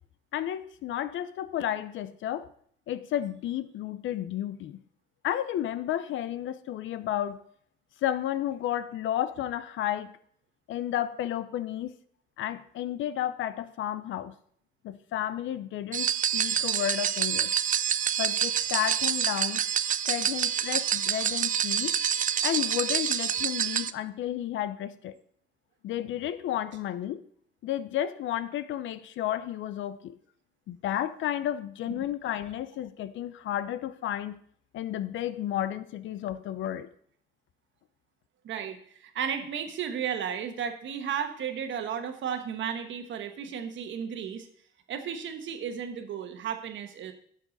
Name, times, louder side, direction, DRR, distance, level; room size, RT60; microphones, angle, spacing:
voice 1, 0.3-2.5 2.9-4.8 5.2-7.4 8.0-10.1 10.7-11.9 12.4-14.3 14.8-17.6 18.2-19.6 20.1-22.0 22.4-25.2 25.8-27.2 27.6-30.2 30.7-34.4 34.7-36.9, left 11 dB, 75° left, 15 dB, 0.6 m, -32 dB
sound 1, 15.9-23.9, right 9 dB, 40° right, 0.4 m, -27 dB
voice 2, 38.4-44.5 44.9-47.1, right 8 dB, 70° right, 6 dB, 1.2 m, -34 dB
10.5 x 6.6 x 4.0 m, 0.62 s
cardioid pair, 90°, 20 cm